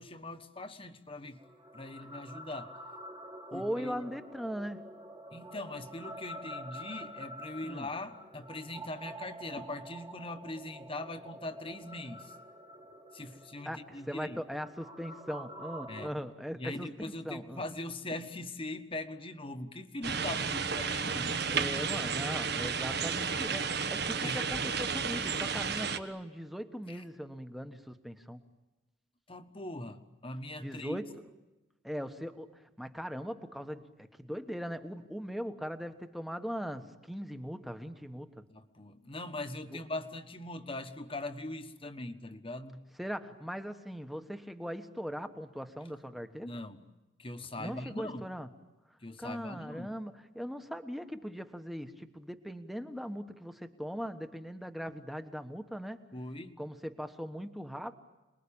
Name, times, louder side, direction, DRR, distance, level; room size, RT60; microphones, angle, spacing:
voice 1, 0.0-1.4 1.7-2.7 3.5-4.0 5.3-12.3 13.1-14.4 15.9-16.1 16.5-21.4 24.2-24.4 26.9-27.0 29.3-31.0 38.5-42.8 46.4-46.8 47.2-48.3 49.0-49.9 56.1-56.6, left 2 dB, 25° left, 9 dB, 1.4 m, -41 dB
sound 1, 1.4-16.1, right 1 dB, 20° right, 1.7 m, -47 dB
voice 2, 3.5-4.8 7.6-7.9 13.6-17.6 21.4-28.4 30.6-31.1 31.8-33.9 34.2-38.4 39.7-39.8 43.0-46.5 47.6-48.5 49.2-56.0 56.6-58.0, equal, ahead, 8 dB, 1.3 m, -40 dB
sound 2, 20.0-26.0, right 5 dB, 50° right, 1.4 m, -32 dB
28.0 x 21.5 x 8.7 m, 1.1 s
head